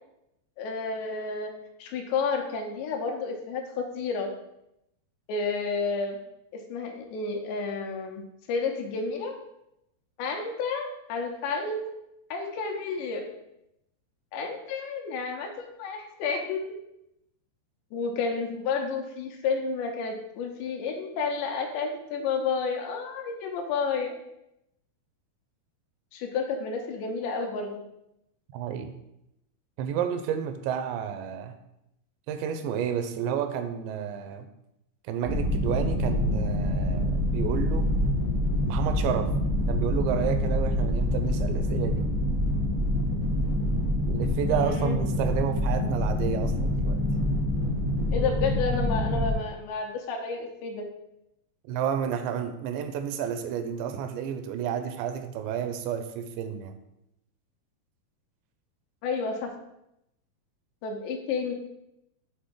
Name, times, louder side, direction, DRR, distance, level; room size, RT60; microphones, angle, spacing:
voice 1, 0.6-1.5 1.8-4.3 5.3-6.2 6.5-8.2 8.5-9.3 10.2-11.8 12.3-13.3 14.3-16.6 17.9-24.1 26.1-27.8 44.5-45.0 48.1-50.8 59.0-59.5 60.8-61.5, left 4 dB, 80° left, 3 dB, 3.0 m, -31 dB
voice 2, 28.5-29.0 29.8-31.6 32.3-34.5 35.1-37.9 38.7-39.3 39.7-42.1 44.1-47.0 51.7-56.8, right 8 dB, 85° right, 8 dB, 2.8 m, -31 dB
sound 1, 35.2-49.3, left 1 dB, 20° right, 0.5 m, -26 dB
7.8 x 4.0 x 3.7 m, 0.83 s
omnidirectional pair, 5.0 m